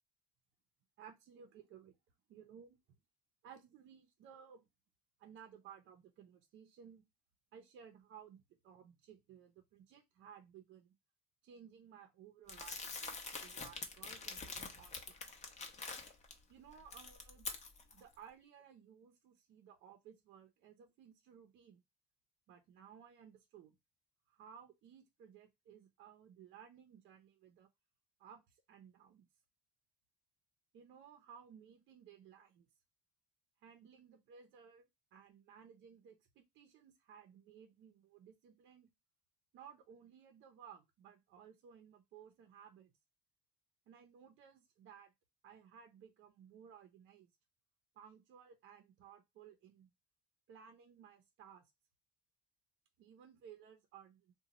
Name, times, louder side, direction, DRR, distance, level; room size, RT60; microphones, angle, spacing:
voice 1, 1.0-2.0 2.3-2.8 3.4-4.7 5.2-7.0 7.5-10.9 11.4-15.0 16.5-17.5 17.9-21.8 22.5-23.8 24.3-27.7 28.2-29.3 30.7-32.7 33.6-38.9 39.5-42.9 43.9-45.1 45.4-47.3 47.9-49.9 50.5-51.7 53.0-54.3, right 8 dB, 65° right, 0.7 m, -58 dB
Crumpling crinkling, 12.5-16.3 16.7-18.0, left 4 dB, 35° left, 0.8 m, -45 dB
2.8 x 2.2 x 3.9 m
cardioid pair, 105°, 21 cm